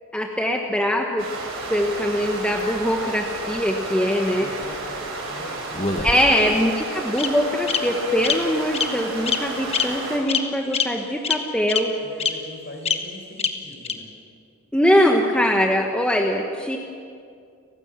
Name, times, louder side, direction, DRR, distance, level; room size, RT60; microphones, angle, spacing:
voice 1, 0.1-1.3 1.7-4.5 6.0-11.9 14.7-16.8, equal, 5° left, 1 dB, 1.2 m, -22 dB
sound 1, 1.2-10.2, right 2 dB, 65° right, 7.0 m, -32 dB
voice 2, 4.2-6.3 12.0-14.1, left 1 dB, 45° left, 3 dB, 4.3 m, -42 dB
Bird vocalization bird call bird song, 5.8-6.5 7.2-7.3 7.7-7.8 8.2-8.3 8.7-8.9 9.3-9.4 9.7-9.8 10.3-10.4 10.7-10.8 11.2-11.3 11.7-11.8 12.2-12.3 12.9-13.0 13.4-13.5 13.8-13.9, left 6 dB, 25° left, 1.3 m, -22 dB
30.0 x 15.5 x 7.5 m, 2.3 s
head